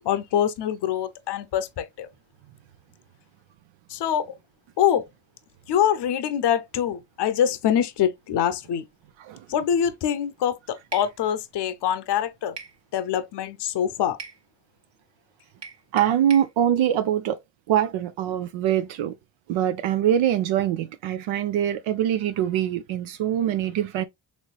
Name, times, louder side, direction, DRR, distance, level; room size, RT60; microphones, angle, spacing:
voice 1, 0.0-2.1 3.9-4.3 4.8-5.0 5.7-8.8 9.5-12.6 12.9-14.2, left 9 dB, 60° left, 0.7 m, -24 dB
sound 1, 10.9-11.1 12.6-12.8 14.2-14.4 15.6-16.5, right 5 dB, 60° right, 1.1 m, -39 dB
voice 2, 15.9-17.4 17.7-19.1 19.5-24.0, right 10 dB, 75° right, 0.5 m, -23 dB
4.4 x 3.0 x 2.2 m
supercardioid pair, 45°, 47 cm